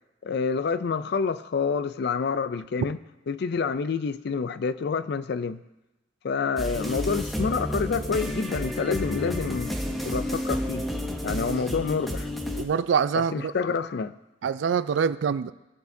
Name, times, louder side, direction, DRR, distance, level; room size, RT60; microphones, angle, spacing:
voice 1, 0.2-3.0 3.3-5.6 6.2-9.7 10.1-10.9 11.2-12.3 13.3-14.1, left 5 dB, 60° left, 14 dB, 0.4 m, -28 dB
sound 1, 6.6-12.6, left 1 dB, ahead, 0.8 m, -31 dB
voice 2, 11.3-11.6 12.5-13.5 14.4-15.5, right 6 dB, 70° right, 15 dB, 0.3 m, -25 dB
16.5 x 6.3 x 2.7 m, 1.0 s
head